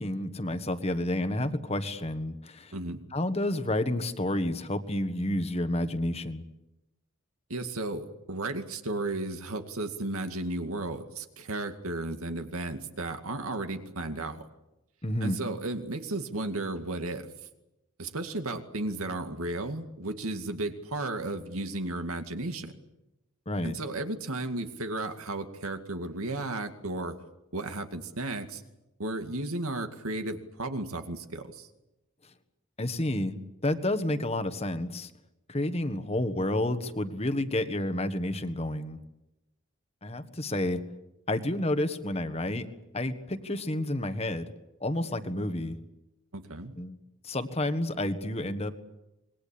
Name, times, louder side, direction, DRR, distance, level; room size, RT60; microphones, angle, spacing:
voice 1, 0.0-2.7 3.1-6.5 15.0-15.4 23.5-23.7 32.8-33.4 33.6-35.1 35.5-39.0 40.0-40.8 41.3-42.7 42.9-44.4 44.8-45.8 46.8-47.0 47.2-48.7, left 1 dB, 30° left, 9 dB, 1.5 m, -30 dB
voice 2, 7.5-14.4 15.2-17.3 18.0-22.7 23.6-27.1 27.5-28.6 29.0-31.7 46.3-46.7, right 2 dB, 85° right, 7 dB, 2.3 m, -34 dB
26.0 x 21.5 x 8.6 m, 0.94 s
head